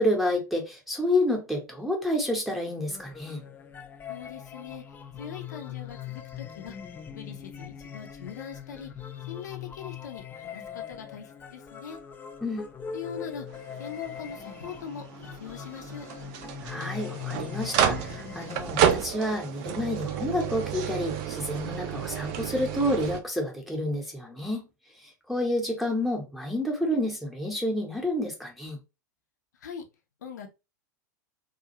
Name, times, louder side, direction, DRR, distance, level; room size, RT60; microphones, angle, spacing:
voice 1, 0.0-3.4 12.4-12.7 16.6-24.7 25.0-28.8, left 1 dB, ahead, 0.8 m, -29 dB
sound 1, 2.9-18.7, left 8 dB, 20° left, 0.3 m, -41 dB
voice 2, 4.1-4.8 5.2-6.8 7.1-8.9 9.3-12.0 12.9-13.5 13.8-16.1 29.6-29.8 30.2-30.5, left 7 dB, 70° left, 0.6 m, -41 dB
sound 2, 13.5-23.2, right 9 dB, 45° right, 0.4 m, -31 dB
2.4 x 2.3 x 2.8 m
figure-of-eight pair, 90°, 10 cm